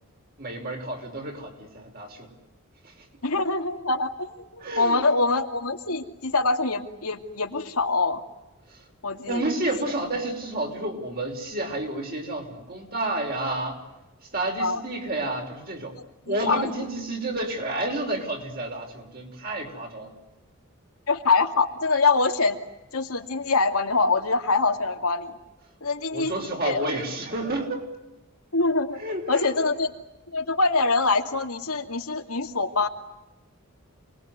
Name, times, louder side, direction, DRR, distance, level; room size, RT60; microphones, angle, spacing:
voice 1, 0.4-2.3 2.8-2.9 4.6-5.1 8.7-8.8 9.3-13.8 14.2-16.0 16.3-20.1 26.1-27.9 29.0-29.6, right 2 dB, 40° right, 2 dB, 5.7 m, -30 dB
voice 2, 3.2-8.2 9.0-9.4 14.6-14.8 16.3-16.7 17.7-17.9 21.1-22.6 22.9-25.3 25.8-26.3 26.6-26.8 28.5-29.0 29.3-29.9 30.3-32.9, left 3 dB, 80° left, 3 dB, 2.6 m, -24 dB
28.5 x 21.0 x 9.6 m, 1.0 s
head